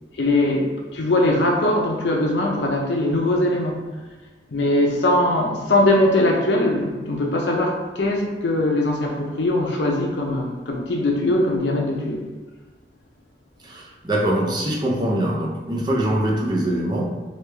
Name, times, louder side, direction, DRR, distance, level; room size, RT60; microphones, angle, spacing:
voice 1, 0.2-3.8 4.5-12.3, left 1 dB, 80° left, 0 dB, 0.6 m, -21 dB
voice 2, 13.6-17.1, right 1 dB, 25° right, -3 dB, 0.5 m, -23 dB
3.2 x 2.3 x 3.3 m, 1.3 s
head